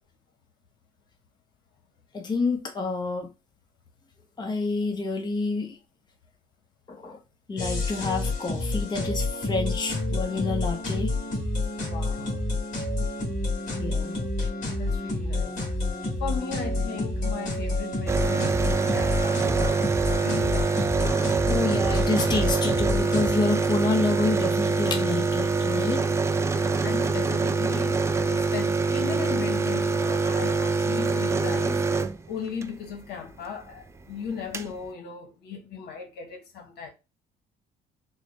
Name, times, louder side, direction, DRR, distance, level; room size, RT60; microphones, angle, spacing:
voice 1, 2.1-3.3 4.4-5.8 6.9-7.2 7.5-11.1 13.8-14.2 21.5-26.0, left 3 dB, 25° left, 0.9 m, -28 dB
sound 1, 7.6-23.3, left 2 dB, 50° left, 1.9 m, -29 dB
voice 2, 11.8-12.5 14.8-15.6 16.2-20.9 26.4-36.9, left 6 dB, 75° left, 1.1 m, -37 dB
sound 2, 18.1-32.7 34.0-34.1 34.3-34.7, right 4 dB, 15° right, 0.4 m, -25 dB
4.5 x 2.2 x 3.2 m
cardioid pair, 110°, 17 cm